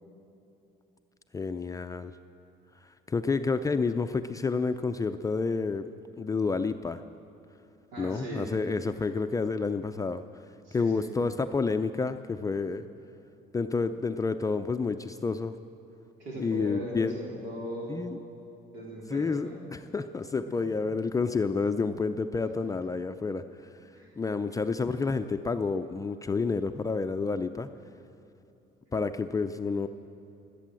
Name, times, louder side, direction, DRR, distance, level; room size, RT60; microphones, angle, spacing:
voice 1, 1.3-2.1 3.1-5.9 6.2-7.0 8.0-10.2 10.7-12.9 13.5-15.6 16.4-17.1 17.9-18.2 19.1-19.5 19.9-23.4 24.2-27.7 28.9-29.9, left 4 dB, 20° left, 8 dB, 0.5 m, -29 dB
voice 2, 7.9-8.5 10.6-11.1 16.2-18.0 18.7-19.6 20.6-20.7 24.0-24.2, right 1 dB, 90° right, -4 dB, 3.9 m, -39 dB
22.5 x 8.4 x 7.6 m, 3.0 s
cardioid pair, 110°, 17 cm